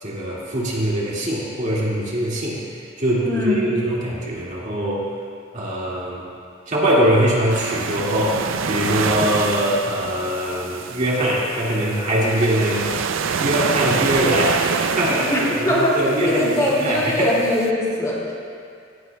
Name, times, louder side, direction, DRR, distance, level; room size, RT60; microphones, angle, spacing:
voice 1, 0.0-5.1 5.5-6.3 6.7-13.0 13.4-17.3, equal, 40° right, -5 dB, 2.0 m, -22 dB
voice 2, 3.2-3.6 15.3-18.3, left 1 dB, 20° left, -5 dB, 2.2 m, -21 dB
sound 1, 7.5-17.7, right 6 dB, 80° right, 0.5 m, -26 dB
16.5 x 14.0 x 2.2 m, 2.3 s
head